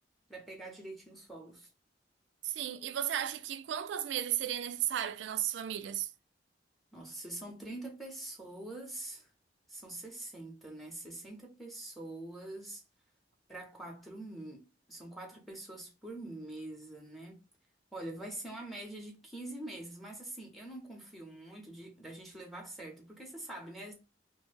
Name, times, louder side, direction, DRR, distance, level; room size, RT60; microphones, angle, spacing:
voice 1, 0.3-1.7 6.9-9.3 9.7-12.8 13.5-17.4 17.9-23.9, right 2 dB, ahead, 0.6 m, -45 dB
voice 2, 2.4-6.1, right 11 dB, 85° right, 0.3 m, -34 dB
2.3 x 2.1 x 3.2 m
head